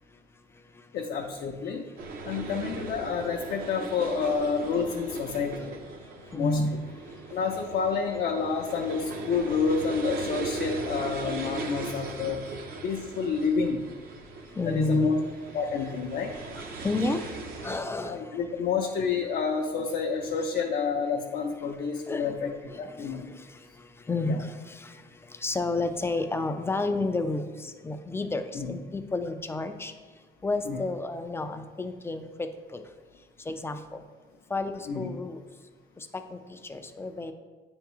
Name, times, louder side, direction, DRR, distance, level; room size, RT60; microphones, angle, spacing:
voice 1, 0.9-1.9 2.2-5.7 6.3-6.6 7.3-12.4 12.8-13.9 14.6-15.2 15.5-16.3 18.0-22.5 22.8-23.3 24.3-24.4 28.5-28.7 30.7-30.8 34.9-35.1, left 5 dB, 60° left, 1 dB, 0.6 m, -29 dB
sound 1, 2.0-17.8, right 3 dB, 60° right, 0.8 m, -39 dB
voice 2, 6.3-6.7 14.6-15.1 16.8-17.2 17.6-18.2 22.1-22.4 22.7-22.8 24.1-24.9 25.4-29.9 30.4-32.8 33.5-34.0 34.5-35.4 36.3-37.3, left 2 dB, 15° left, 8 dB, 0.4 m, -30 dB
8.9 x 3.5 x 3.0 m, 1.4 s
cardioid pair, 110°, 17 cm